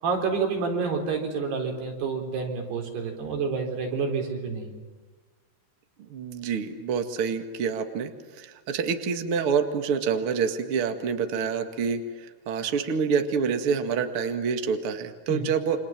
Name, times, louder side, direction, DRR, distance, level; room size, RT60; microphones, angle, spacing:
voice 1, 0.0-4.8 15.3-15.5, right 5 dB, 85° right, 2 dB, 6.2 m, -28 dB
voice 2, 6.0-8.1 8.4-15.8, right 6 dB, 45° right, 6 dB, 2.2 m, -27 dB
29.5 x 26.0 x 7.5 m, 1.4 s
omnidirectional pair, 4.5 m